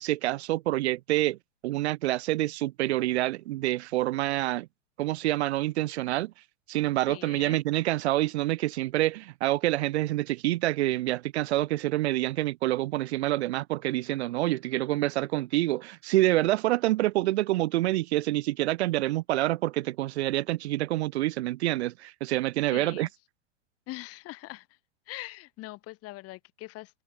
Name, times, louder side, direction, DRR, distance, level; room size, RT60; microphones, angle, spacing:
voice 1, 0.0-1.4 1.6-4.7 5.0-6.3 6.7-23.1, right 16 dB, 65° right, 0.5 m, -27 dB
voice 2, 7.1-7.6 22.7-23.1 23.9-24.7 25.1-27.0, left 19 dB, 40° left, 5.6 m, -42 dB
hypercardioid pair, 110°, 36 cm